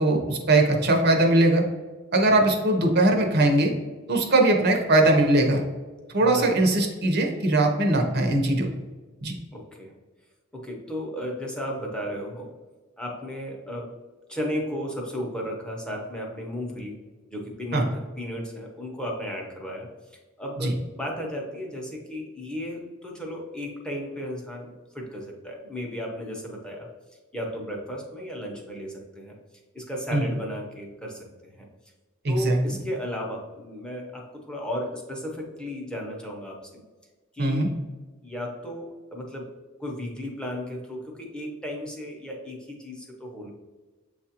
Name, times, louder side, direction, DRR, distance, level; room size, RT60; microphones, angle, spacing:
voice 1, 0.0-1.6 2.1-3.7 4.1-5.6 6.1-8.7 9.2-9.3 17.7-17.8 20.6-20.7 30.1-30.3 32.2-32.6 37.4-37.7, right 2 dB, 55° right, 2 dB, 0.7 m, -20 dB
voice 2, 6.2-6.6 9.5-9.9 10.5-12.5 13.0-14.0 14.3-17.0 17.3-26.9 27.3-29.3 29.7-31.6 32.3-36.8 37.3-37.7 38.2-39.5 39.8-43.5, equal, 5° left, -1 dB, 0.8 m, -34 dB
7.2 x 2.4 x 2.8 m, 1.3 s
head